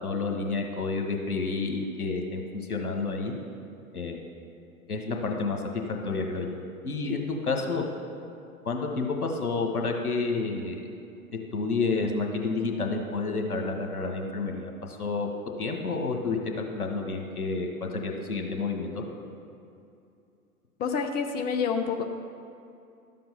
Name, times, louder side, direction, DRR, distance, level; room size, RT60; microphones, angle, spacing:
voice 1, 0.0-3.3 3.9-4.3 4.9-7.8 8.6-10.8 11.5-15.3 15.6-19.0, left 3 dB, 80° left, 3 dB, 1.6 m, -30 dB
voice 2, 20.8-22.0, left 6 dB, 20° left, 5 dB, 0.7 m, -28 dB
12.5 x 7.7 x 5.7 m, 2.6 s
figure-of-eight pair, 95°, 44 cm